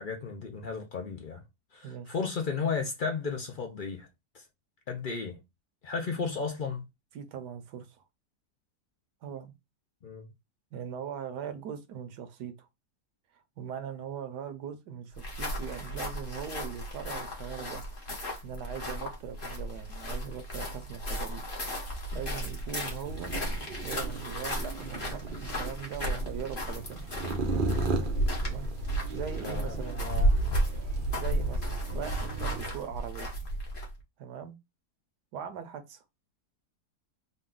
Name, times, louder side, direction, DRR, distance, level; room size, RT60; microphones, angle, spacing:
voice 1, 0.0-1.4 1.7-4.1 4.3-4.4 4.9-5.4 5.8-6.8 10.0-10.3 29.4-30.5, left 5 dB, 65° left, 0.5 m, -34 dB
voice 2, 1.8-2.1 7.1-7.9 9.2-9.5 10.7-12.7 13.6-17.8 18.4-21.4 22.1-23.3 23.8-27.1 28.4-28.7 29.1-30.0 31.1-33.3 34.2-34.5 35.3-36.0, right 8 dB, 80° right, 1.3 m, -40 dB
sound 1, 15.1-34.0, right 1 dB, 35° left, 1.1 m, -33 dB
sound 2, 23.0-32.7, right 3 dB, 60° right, 0.5 m, -37 dB
4.0 x 2.3 x 3.7 m
omnidirectional pair, 1.7 m